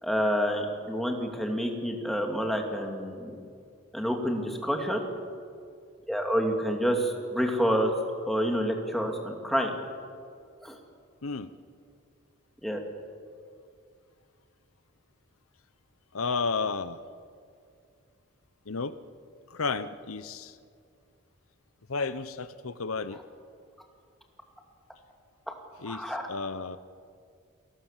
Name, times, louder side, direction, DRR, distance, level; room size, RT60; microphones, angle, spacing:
voice 1, 0.0-3.3 3.9-5.1 6.1-7.9 8.3-9.8 10.6-10.8 12.6-12.8 25.5-25.6 25.9-26.2, equal, ahead, 2 dB, 2.4 m, -28 dB
voice 2, 16.1-17.0 18.7-18.9 19.5-20.6 21.9-23.2 25.8-26.8, left 4 dB, 90° left, 13 dB, 0.8 m, -32 dB
29.0 x 19.0 x 7.4 m, 2.3 s
head